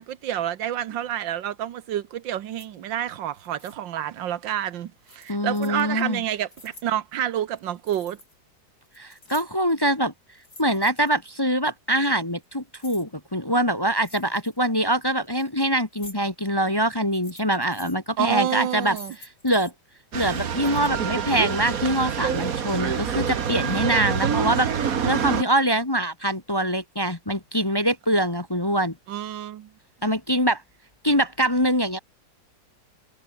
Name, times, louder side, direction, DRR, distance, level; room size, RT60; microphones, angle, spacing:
voice 1, 0.0-8.2 18.2-19.2 29.1-29.7, right 11 dB, 75° right, 1.6 m, -29 dB
sound 1, 2.5-2.7 3.3-3.7 5.0-5.8 6.3-6.9 7.5-8.4 8.7-9.7 10.3-11.4 12.2-13.1 14.0-14.6 15.2-15.5 15.9-16.2 16.9-18.0 18.6-19.7 20.5-20.9, left 2 dB, 55° left, 8.0 m, -47 dB
voice 2, 5.3-6.2 9.0-10.1 10.6-19.0 19.4-19.7 20.1-28.9 30.0-30.6 31.0-32.0, right 1 dB, 15° left, 1.2 m, -24 dB
sound 2, 20.1-25.4, right 7 dB, 50° right, 1.7 m, -26 dB
omnidirectional pair, 2.0 m